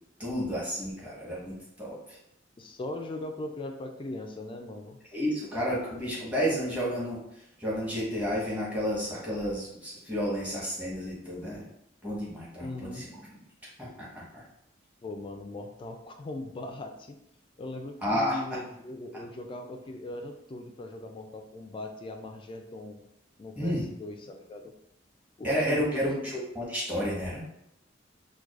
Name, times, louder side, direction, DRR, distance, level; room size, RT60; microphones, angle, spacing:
voice 1, 0.2-2.2 5.1-7.2 7.6-11.7 12.0-13.1 13.8-14.4 18.0-18.4 23.6-23.8 25.4-27.4, equal, 10° right, -7 dB, 1.1 m, -31 dB
voice 2, 2.6-5.0 12.6-13.1 15.0-17.2 17.6-23.0 23.4-24.7 25.4-26.3, left 2 dB, 25° left, 5 dB, 0.3 m, -40 dB
4.6 x 2.2 x 2.4 m, 0.80 s
head